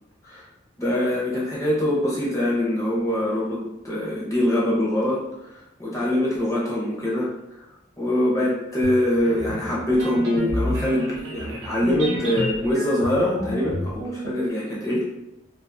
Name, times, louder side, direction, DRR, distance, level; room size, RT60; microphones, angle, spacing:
voice 1, 0.8-5.2 5.5-7.6 8.0-15.0, left 1 dB, 15° left, -5 dB, 0.6 m, -24 dB
sound 1, 8.8-9.1 9.5-9.7 10.2-10.9 11.8-12.6 13.0-14.0, left 2 dB, 80° left, 0.4 m, -30 dB
sound 2, 9.2-14.4, right 1 dB, 65° right, 0.5 m, -35 dB
2.4 x 2.3 x 2.5 m, 0.91 s
head